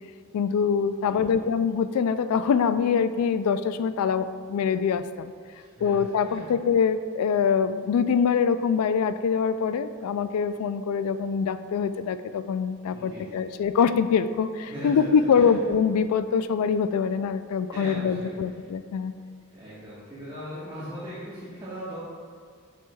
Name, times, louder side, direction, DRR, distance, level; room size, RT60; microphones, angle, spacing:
voice 1, 0.3-5.3 5.8-19.1, left 6 dB, 75° left, 14 dB, 0.3 m, -24 dB
voice 2, 1.0-1.4 5.5-6.5 12.9-13.4 14.7-15.6 17.7-18.5 19.5-22.0, equal, 20° right, -11 dB, 1.3 m, -39 dB
7.2 x 6.1 x 2.3 m, 2.1 s
head